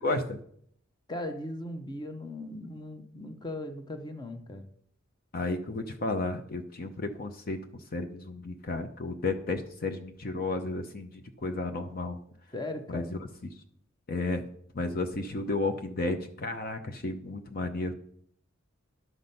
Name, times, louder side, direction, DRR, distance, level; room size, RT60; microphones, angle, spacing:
voice 1, 0.0-0.4 5.3-7.6 7.9-12.2 12.9-13.0 14.1-14.4 14.7-17.9, left 2 dB, 45° left, 6 dB, 0.8 m, -32 dB
voice 2, 1.1-4.6 12.5-13.1, left 1 dB, 20° left, 8 dB, 0.9 m, -38 dB
11.0 x 6.1 x 5.4 m, 0.65 s
head